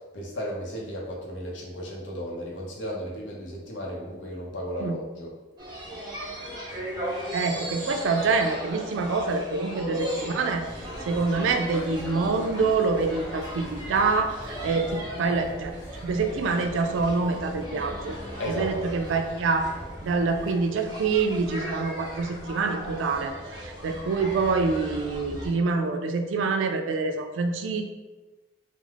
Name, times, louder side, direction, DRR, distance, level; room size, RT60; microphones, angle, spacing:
voice 1, 0.1-5.3 18.4-19.2, equal, 80° left, -2 dB, 0.7 m, -34 dB
sound 1, 5.6-25.5, equal, 20° right, 0.6 m, -37 dB
voice 2, 7.3-10.6 11.1-15.7 16.0-18.2 18.5-19.7 20.0-23.3 23.6-27.8, right 4 dB, 85° right, 6 dB, 0.3 m, -26 dB
sound 2, 10.6-20.5, equal, 25° left, 0.9 m, -43 dB
2.3 x 2.0 x 3.3 m, 1.2 s
head